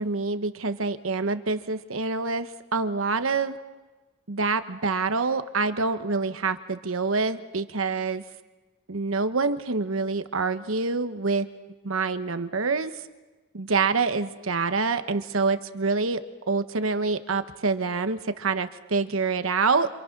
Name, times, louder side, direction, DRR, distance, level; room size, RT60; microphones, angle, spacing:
voice 1, 0.0-3.6 4.3-8.2 8.9-11.5 11.8-12.9 13.5-16.2 16.5-19.9, right 4 dB, 90° right, 10 dB, 1.1 m, -26 dB
27.5 x 27.0 x 6.0 m, 1.2 s
head